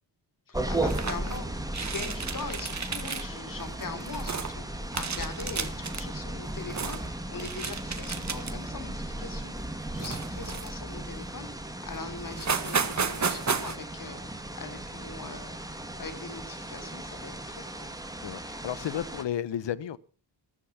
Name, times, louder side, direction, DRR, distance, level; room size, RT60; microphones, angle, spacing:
voice 1, 0.5-17.9, left 4 dB, 50° left, 3.1 m, -41 dB
sound 1, 0.5-19.2, right 1 dB, 10° right, 2.6 m, -36 dB
sound 2, 0.8-1.4 1.7-3.2 3.6-4.5 4.9-6.0 6.5-7.1 7.4-8.7 9.1-9.3 10.0-10.9 11.5-11.6 11.9-12.0 12.3-13.8, right 5 dB, 40° right, 1.8 m, -33 dB
voice 2, 18.2-20.0, left 10 dB, 80° left, 1.0 m, -33 dB
14.5 x 14.0 x 5.8 m
wide cardioid pair, 115°, 42 cm